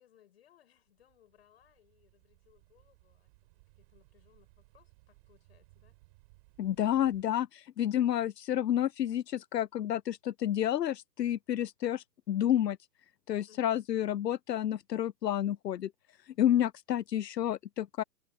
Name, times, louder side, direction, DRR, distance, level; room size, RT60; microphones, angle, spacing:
voice 1, 0.0-3.3 3.8-6.0 13.5-13.9, left 11 dB, 40° left, 6.2 m, -65 dB
sound 1, 0.8-7.2, right 26 dB, 20° right, 6.7 m, -63 dB
voice 2, 6.6-12.8 13.3-15.9 16.2-18.0, left 11 dB, 80° left, 0.7 m, -30 dB
hypercardioid pair, 170°, 48 cm